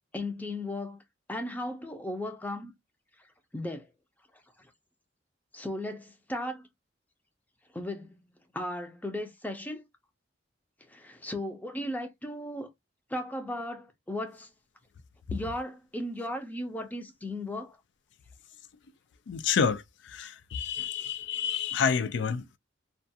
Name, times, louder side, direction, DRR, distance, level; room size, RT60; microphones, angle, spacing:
voice 1, 0.1-1.0 1.3-2.7 3.5-3.9 5.5-6.7 7.7-9.8 10.9-12.7 13.1-14.5 15.3-17.8, left 1 dB, 10° left, 0.5 m, -36 dB
voice 2, 19.3-22.6, left 6 dB, 70° left, 0.4 m, -29 dB
2.3 x 2.3 x 2.6 m
head